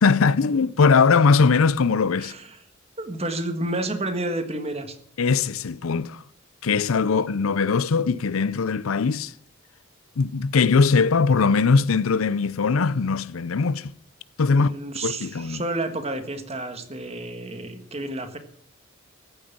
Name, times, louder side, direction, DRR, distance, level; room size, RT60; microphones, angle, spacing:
voice 1, 0.0-2.3 5.2-6.2 6.6-9.3 10.2-13.9 14.4-14.7 15.0-15.6, left 4 dB, 85° left, 0.6 m, -20 dB
voice 2, 2.2-2.6 3.0-5.0 14.5-18.4, right 2 dB, 30° right, 1.6 m, -30 dB
14.5 x 9.0 x 7.2 m
head